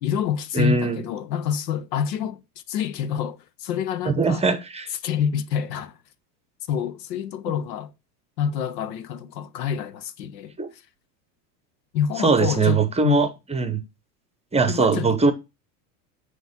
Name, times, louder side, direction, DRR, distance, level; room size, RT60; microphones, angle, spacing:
voice 1, 0.0-2.4 2.7-4.5 5.0-6.0 6.7-7.9 8.4-10.6 11.9-13.2 14.7-15.2, left 8 dB, 85° left, 0.9 m, -27 dB
voice 2, 0.5-1.0 4.1-4.9 10.6-10.7 12.2-13.8 14.5-15.3, right 4 dB, 15° right, 0.9 m, -21 dB
9.2 x 3.2 x 5.8 m
supercardioid pair, 115°, 49 cm